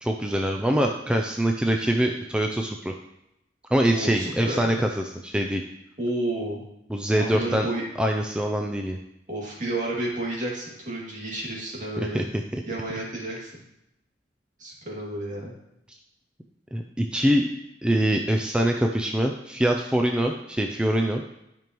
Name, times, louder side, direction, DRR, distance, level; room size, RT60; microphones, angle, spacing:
voice 1, 0.0-2.9 3.7-5.6 6.9-7.7 8.0-9.0 12.0-12.2 12.5-12.6 16.7-17.5 17.8-21.2, right 1 dB, 5° right, 2 dB, 0.4 m, -24 dB
voice 2, 3.9-4.8 6.0-6.6 7.2-7.8 9.3-12.3 12.7-13.6 14.6-15.5, right 1 dB, 45° right, -3 dB, 2.3 m, -31 dB
12.0 x 5.3 x 3.0 m, 0.85 s
head